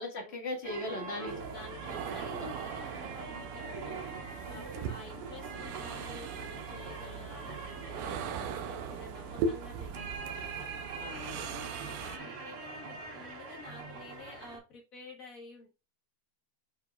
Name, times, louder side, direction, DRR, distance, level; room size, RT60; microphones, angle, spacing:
voice 1, 0.0-1.3 2.3-2.5 11.0-11.7, left 2 dB, 30° left, 1 dB, 1.2 m, -39 dB
sound 1, 0.6-14.6, right 4 dB, 50° right, 2.2 m, -43 dB
voice 2, 1.2-10.6 12.0-15.7, left 3 dB, 80° left, 0 dB, 0.7 m, -51 dB
sound 2, 1.3-12.2, right 5 dB, 80° right, 2.3 m, -40 dB
8.5 x 4.6 x 2.4 m, 0.28 s
omnidirectional pair, 3.8 m